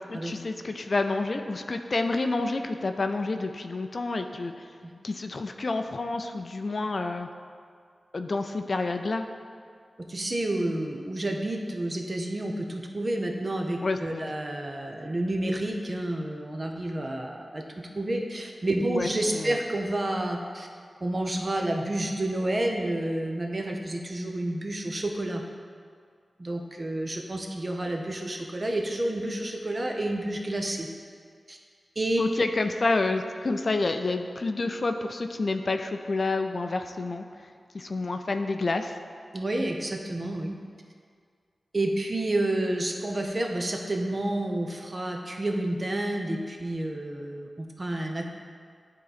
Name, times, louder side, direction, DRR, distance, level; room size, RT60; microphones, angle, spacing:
voice 1, 0.1-4.7 5.0-7.3 8.1-9.3 13.8-14.3 18.8-19.6 32.2-37.2 37.7-39.0, left 3 dB, 55° left, 6 dB, 0.4 m, -29 dB
voice 2, 10.1-20.7 21.0-25.4 26.4-30.9 31.5-31.6 32.0-32.2 39.3-40.6 41.7-48.3, right 1 dB, 40° right, 2 dB, 0.7 m, -30 dB
9.4 x 3.8 x 4.1 m, 2.1 s
wide cardioid pair, 80°, 0 cm